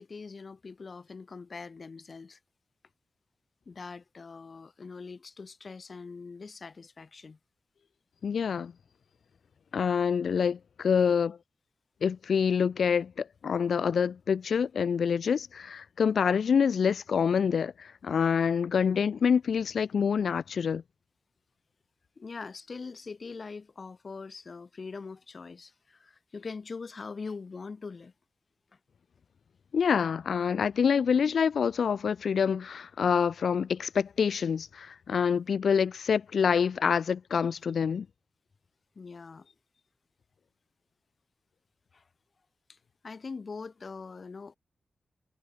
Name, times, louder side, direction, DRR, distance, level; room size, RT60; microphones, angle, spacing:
voice 1, 0.0-2.4 3.7-7.4 10.8-10.9 22.2-28.1 38.9-39.5 41.9-42.0 42.7-42.8 43.0-44.6, left 4 dB, 50° left, 6.5 m, -42 dB
voice 2, 8.2-8.7 9.7-11.4 12.0-20.8 29.7-38.1, left 6 dB, 75° left, 2.4 m, -26 dB
wide cardioid pair, 95°, 0 cm